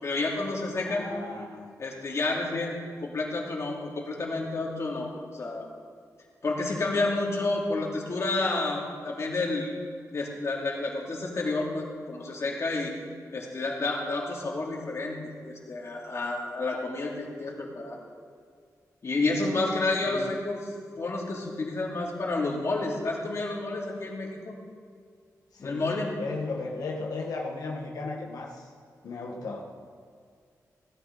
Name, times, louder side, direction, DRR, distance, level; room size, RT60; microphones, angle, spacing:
voice 1, 0.0-1.1 1.8-2.7 3.0-5.7 6.4-9.7 10.1-12.9 13.3-15.2 15.5-18.0 19.0-24.5 25.6-26.1, left 2 dB, 50° left, -2 dB, 2.8 m, -30 dB
voice 2, 0.8-1.7 20.1-20.3 25.5-25.8 26.2-28.7 29.0-29.6, left 3 dB, 90° left, -2 dB, 1.5 m, -35 dB
16.5 x 12.5 x 4.1 m, 2.1 s
wide cardioid pair, 130°, 6 cm